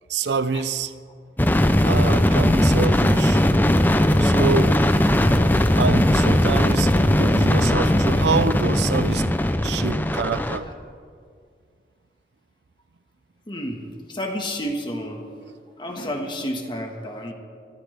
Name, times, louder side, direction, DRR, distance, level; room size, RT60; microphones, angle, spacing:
voice 1, 0.1-0.9 1.8-3.5 4.2-4.8 5.8-9.3 9.6-10.7, right 4 dB, 80° right, 14 dB, 0.6 m, -26 dB
sound 1, 1.4-10.6, left 1 dB, 10° left, 0.5 m, -19 dB
voice 2, 13.5-13.8 14.1-15.3 15.8-17.3, equal, 25° left, 2 dB, 1.6 m, -30 dB
23.0 x 13.5 x 3.5 m, 2.1 s
head